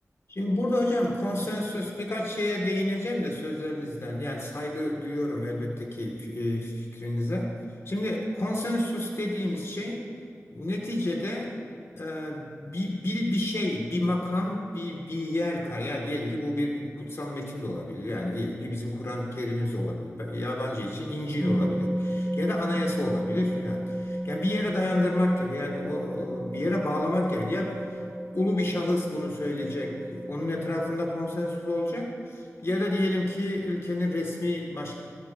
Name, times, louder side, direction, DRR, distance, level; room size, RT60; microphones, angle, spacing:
voice 1, 0.3-7.5 7.9-10.1 10.5-11.5 12.0-27.8 28.3-35.0, left 1 dB, 55° left, -1 dB, 2.4 m, -29 dB
sound 1, 21.4-32.0, equal, 5° left, 2.2 m, -33 dB
25.0 x 16.0 x 2.9 m, 2.6 s
wide cardioid pair, 55°, 5 cm